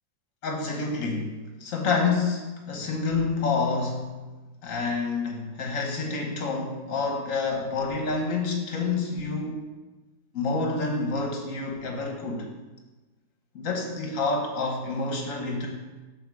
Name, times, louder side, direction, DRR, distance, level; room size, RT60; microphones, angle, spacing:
voice 1, 0.4-4.2 4.6-9.6 10.3-12.5 13.5-15.7, left 4 dB, 55° left, 1 dB, 1.5 m, -28 dB
7.1 x 3.9 x 6.3 m, 1.2 s
omnidirectional pair, 1.7 m